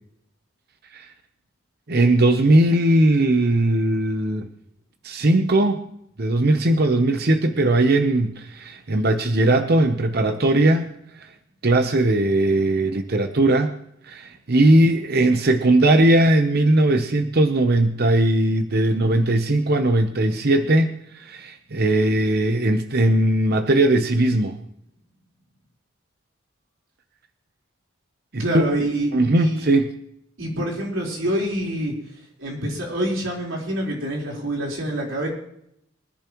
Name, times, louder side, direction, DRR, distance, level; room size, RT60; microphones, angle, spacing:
voice 1, 1.9-4.5 5.0-5.8 6.2-10.9 11.6-13.7 14.1-20.9 21.2-24.5 28.3-28.4 29.1-29.9, right 1 dB, 50° right, 7 dB, 0.8 m, -19 dB
voice 2, 28.4-29.6 30.4-31.9 32.4-35.3, right 1 dB, 70° right, -2 dB, 4.2 m, -26 dB
23.5 x 10.5 x 3.0 m, 0.74 s
head